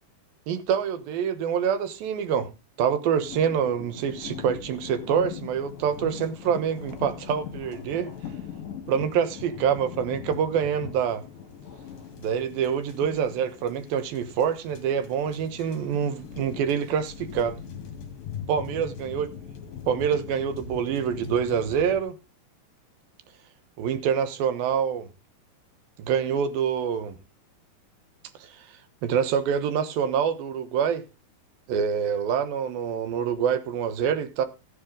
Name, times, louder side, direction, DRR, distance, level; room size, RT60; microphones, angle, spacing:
voice 1, 0.5-2.5 2.8-8.1 8.9-11.2 12.2-17.6 18.5-19.3 19.9-22.2 23.8-25.1 26.0-27.2 29.0-31.0 31.7-34.5, right 7 dB, 90° right, 2.9 m, -26 dB
sound 1, 3.2-22.0, left 8 dB, 75° left, 3.9 m, -40 dB
14.5 x 9.7 x 3.8 m
omnidirectional pair, 4.1 m